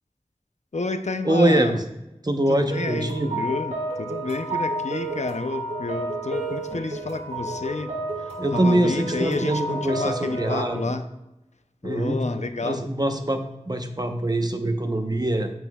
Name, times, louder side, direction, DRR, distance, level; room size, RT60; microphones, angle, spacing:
voice 1, 0.7-1.8 2.5-3.1 3.4-7.9 8.5-11.1 11.8-12.8, left 3 dB, 70° left, 9 dB, 0.6 m, -30 dB
voice 2, 1.2-1.7 2.2-3.4 8.4-10.9 11.8-12.2 12.6-15.5, right 1 dB, 35° right, 6 dB, 0.8 m, -23 dB
sound 1, 2.7-10.8, right 2 dB, 65° right, 1.5 m, -31 dB
9.0 x 8.3 x 2.3 m, 0.95 s
wide cardioid pair, 45°, 12 cm